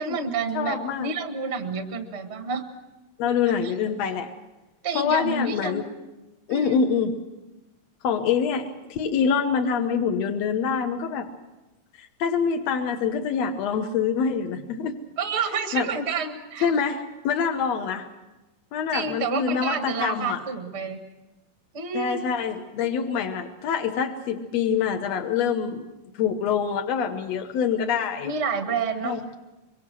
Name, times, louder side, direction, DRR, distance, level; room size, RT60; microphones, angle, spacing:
voice 1, 0.0-2.6 3.4-3.7 4.8-5.8 6.5-6.8 15.2-16.7 18.9-21.0 21.7-22.2 28.2-29.2, right 4 dB, 55° right, 5 dB, 0.7 m, -29 dB
voice 2, 0.5-1.1 3.2-4.3 5.0-5.8 6.5-7.1 8.0-11.3 12.0-15.0 15.7-15.9 16.6-18.1 18.7-20.4 21.9-25.9 26.2-28.3 29.0-29.2, left 6 dB, 65° left, 4 dB, 1.7 m, -25 dB
24.5 x 23.5 x 6.2 m, 1.0 s
omnidirectional pair, 4.2 m